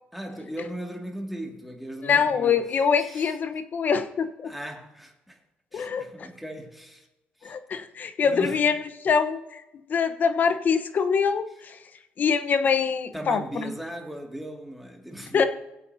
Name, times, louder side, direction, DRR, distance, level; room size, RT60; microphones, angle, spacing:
voice 1, 0.1-2.6 3.0-3.4 4.4-5.4 5.7-7.1 7.4-7.6 8.2-8.6 13.1-15.5, right 1 dB, ahead, 1 dB, 2.2 m, -38 dB
voice 2, 2.0-4.5 5.7-6.1 7.4-8.8 9.0-9.6 9.9-11.8 12.2-13.7 15.3-15.5, left 6 dB, 45° left, 10 dB, 1.0 m, -24 dB
20.5 x 8.2 x 2.8 m, 0.97 s
cardioid pair, 95°, 4 cm